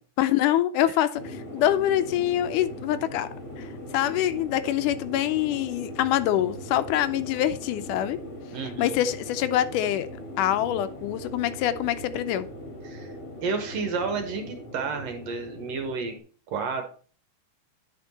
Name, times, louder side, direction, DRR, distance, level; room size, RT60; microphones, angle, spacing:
voice 1, 0.2-3.3 3.6-8.2 8.8-10.1 10.4-12.5, left 12 dB, 80° left, 2.1 m, -25 dB
sound 1, 1.1-16.2, left 1 dB, 45° left, 1.6 m, -40 dB
voice 2, 8.5-9.0 12.8-13.1 13.4-16.1 16.5-16.9, right 4 dB, 65° right, 1.7 m, -31 dB
9.6 x 5.0 x 4.0 m
omnidirectional pair, 3.7 m